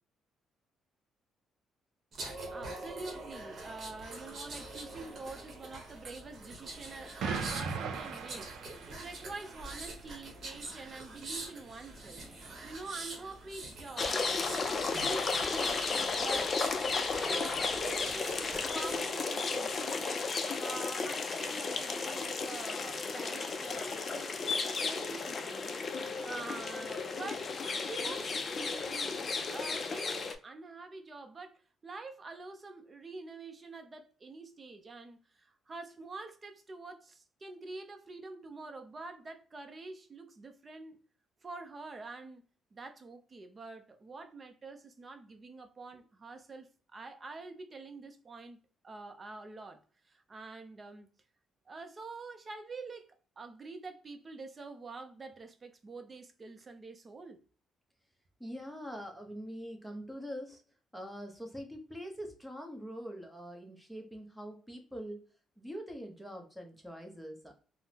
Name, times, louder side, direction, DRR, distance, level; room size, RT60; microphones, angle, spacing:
sound 1, 2.1-19.1 19.5-19.7, right 2 dB, 45° right, 0.9 m, -45 dB
voice 1, 2.5-12.3 12.6-16.5 17.2-20.2 20.6-25.8 26.2-29.2 29.5-41.0 41.4-42.4 42.7-48.6 48.8-51.1 51.7-53.1 53.4-57.4, right 3 dB, 30° right, 0.5 m, -46 dB
Explosion, 7.2-9.4, right 5 dB, 80° right, 0.4 m, -37 dB
sound 2, 14.0-30.3, left 4 dB, 35° left, 0.4 m, -34 dB
voice 2, 58.4-60.6 60.9-65.2 65.6-67.5, equal, ahead, 0.8 m, -43 dB
3.6 x 2.0 x 2.7 m
cardioid pair, 115°, 0 cm